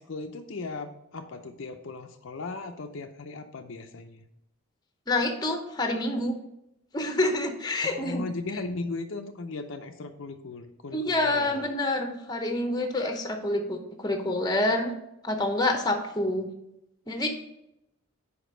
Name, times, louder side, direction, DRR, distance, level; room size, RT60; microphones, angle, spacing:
voice 1, 0.0-4.3 7.8-11.7, left 3 dB, 60° left, 5 dB, 0.5 m, -37 dB
voice 2, 5.1-6.3 6.9-8.2 10.9-14.9 15.2-16.5 17.1-17.3, left 1 dB, 20° left, 4 dB, 0.8 m, -27 dB
5.0 x 5.0 x 6.2 m, 0.86 s
head